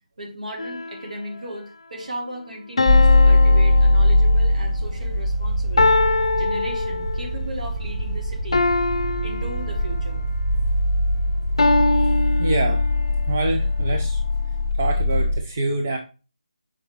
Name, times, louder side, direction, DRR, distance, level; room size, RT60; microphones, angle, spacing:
voice 1, 0.2-5.9 6.4-8.6 9.2-10.2, equal, 75° right, 0 dB, 3.5 m, -36 dB
sound 1, 0.6-1.4 2.8-4.6 5.8-7.4 8.5-10.2 11.6-13.2, left 3 dB, 55° left, 0.6 m, -23 dB
sound 2, 2.9-15.4, left 2 dB, ahead, 1.2 m, -21 dB
voice 2, 12.4-12.9 13.3-14.2 14.8-16.0, right 2 dB, 15° right, 3 dB, 0.3 m, -26 dB
6.3 x 4.9 x 4.5 m, 0.35 s
figure-of-eight pair, 180°, 4 cm